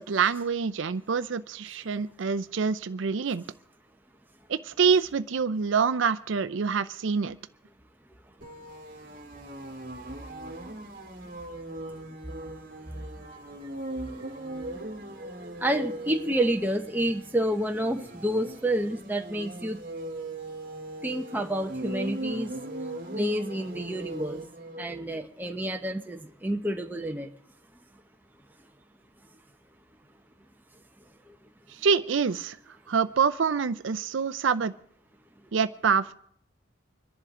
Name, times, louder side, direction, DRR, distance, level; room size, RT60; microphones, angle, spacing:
voice 1, 0.0-3.4 4.5-7.4 31.8-32.6 32.9-34.7 35.5-36.1, right 5 dB, 70° right, 13 dB, 0.5 m, -26 dB
sound 1, 8.4-25.0, right 1 dB, 45° right, 1.8 m, -39 dB
voice 2, 15.6-19.8 21.0-22.5 23.1-24.4 24.8-27.3 31.3-31.4, right 1 dB, 10° right, 4 dB, 0.8 m, -29 dB
25.5 x 11.0 x 3.7 m, 0.65 s
head